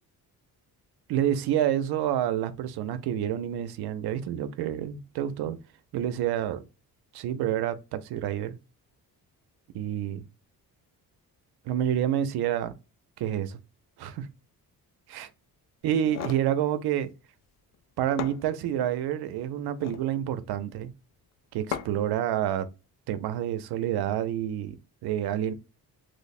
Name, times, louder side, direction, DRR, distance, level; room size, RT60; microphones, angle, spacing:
voice 1, 1.1-5.6 5.9-6.6 7.1-8.6 9.7-10.3 11.7-12.7 13.2-13.6 14.0-14.3 15.1-15.3 15.8-17.1 18.0-20.9 21.5-22.7 23.1-24.8 25.0-25.5, right 11 dB, 90° right, 0.5 m, -28 dB
sound 1, 15.9-16.5 17.7-17.8 18.2-19.0 19.6-20.1 21.7-22.1, left 8 dB, 50° left, 0.4 m, -36 dB
3.0 x 2.0 x 4.0 m
cardioid pair, 155°, 37 cm